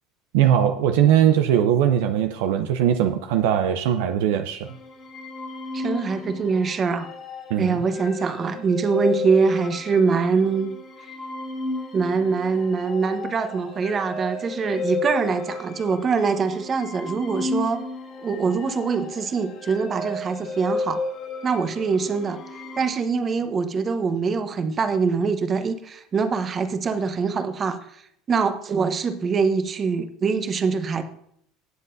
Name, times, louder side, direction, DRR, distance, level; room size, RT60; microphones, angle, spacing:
voice 1, 0.3-4.7 7.5-7.8, right 10 dB, 75° right, 0.6 m, -20 dB
sound 1, 4.6-22.9, left 2 dB, 45° left, 2.6 m, -33 dB
voice 2, 5.7-7.1 7.6-10.8 11.9-17.8 18.2-21.0 21.4-22.4 22.7-28.0 28.3-31.0, right 5 dB, 35° right, 1.1 m, -24 dB
17.5 x 7.4 x 2.7 m
hypercardioid pair, 80°, 0 cm